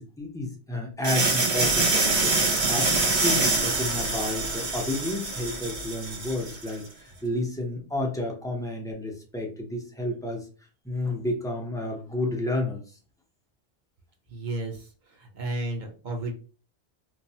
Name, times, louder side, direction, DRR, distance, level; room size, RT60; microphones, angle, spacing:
voice 1, 0.0-10.4 10.8-12.8, left 1 dB, 5° left, 0 dB, 0.3 m, -31 dB
sound 1, 1.0-6.7, right 3 dB, 75° right, 1.0 m, -25 dB
voice 2, 14.3-16.3, right 2 dB, 50° right, 1 dB, 0.8 m, -33 dB
3.1 x 2.0 x 2.7 m, 0.37 s
omnidirectional pair, 1.1 m